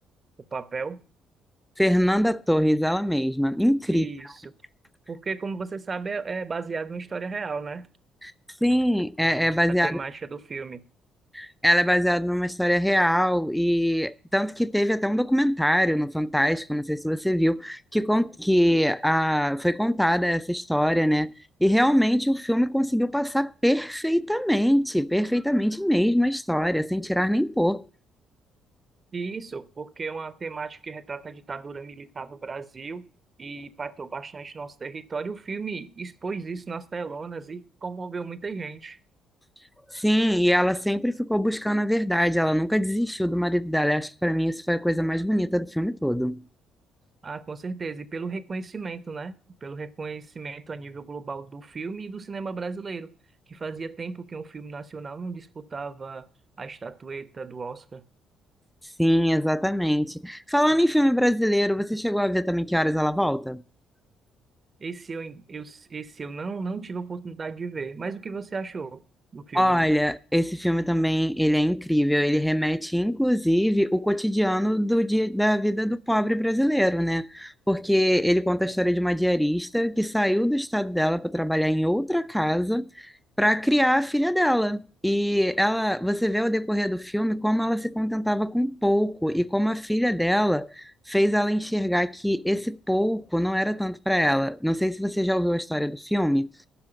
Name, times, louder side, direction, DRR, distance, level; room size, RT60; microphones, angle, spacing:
voice 1, 0.5-1.0 3.9-4.6 5.1-7.9 9.8-10.8 29.1-33.1 33.4-39.0 47.2-53.1 53.5-56.3 56.6-58.0 64.8-69.0 69.3-69.8, right 4 dB, 35° right, 0.9 m, -35 dB
voice 2, 1.8-4.1 8.2-8.3 8.6-10.0 11.3-21.3 21.6-27.9 39.9-46.4 59.0-63.6 69.5-83.1 83.4-96.5, equal, ahead, 0.6 m, -23 dB
11.5 x 6.3 x 8.8 m
figure-of-eight pair, 45°, 0 cm